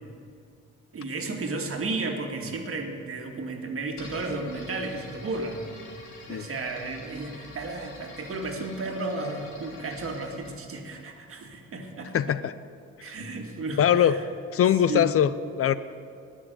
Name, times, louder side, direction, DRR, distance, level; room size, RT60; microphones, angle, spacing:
voice 1, 0.9-5.7 6.3-12.2 13.0-14.2 14.9-15.1, right 2 dB, 45° right, 2 dB, 2.1 m, -33 dB
sound 1, 3.9-10.6, left 3 dB, 90° left, 3.4 m, -47 dB
voice 2, 12.1-12.5 13.8-14.2 14.5-15.3 15.6-15.8, left 9 dB, 50° left, 15 dB, 0.5 m, -21 dB
19.0 x 6.4 x 8.0 m, 2.4 s
cardioid pair, 90°, 30 cm